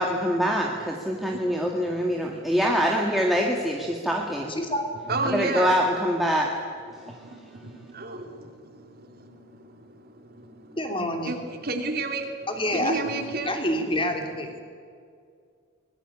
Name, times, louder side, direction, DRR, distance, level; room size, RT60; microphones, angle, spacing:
voice 1, 0.0-4.5 5.3-6.5, equal, ahead, -1 dB, 1.9 m, -24 dB
voice 2, 1.0-2.5 4.0-4.1 4.6-4.7 5.1-5.8 6.9-13.6, right 3 dB, 45° right, 5 dB, 2.8 m, -33 dB
voice 3, 4.5-4.8 10.8-11.4 12.6-13.0 13.5-14.5, left 1 dB, 25° left, 4 dB, 3.0 m, -27 dB
24.0 x 20.5 x 8.7 m, 2.2 s
head